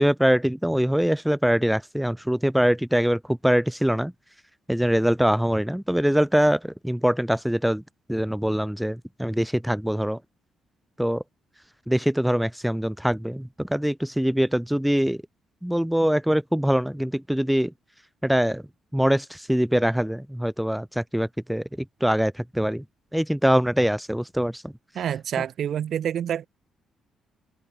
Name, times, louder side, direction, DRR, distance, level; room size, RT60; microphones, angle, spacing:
voice 1, 0.0-4.1 4.7-7.8 8.1-10.2 11.0-11.2 11.9-15.2 15.6-17.7 18.2-18.6 18.9-21.6 22.0-22.8 23.1-24.7, equal, 5° right, 0.6 m, -23 dB
voice 2, 24.9-26.5, right 9 dB, 65° right, 2.2 m, -27 dB
cardioid pair, 90°, 0 cm